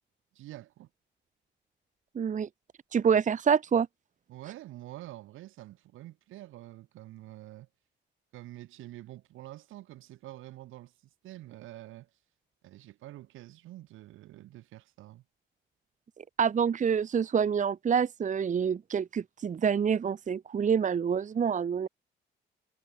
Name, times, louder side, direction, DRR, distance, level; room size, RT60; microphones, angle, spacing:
voice 1, 0.3-0.9 4.3-7.7 8.3-10.9 11.2-12.1 12.6-15.2, right 15 dB, 90° right, 7.8 m, -47 dB
voice 2, 2.1-2.5 2.9-3.9 16.4-21.9, right 7 dB, 40° right, 0.9 m, -27 dB
cardioid pair, 90°, 20 cm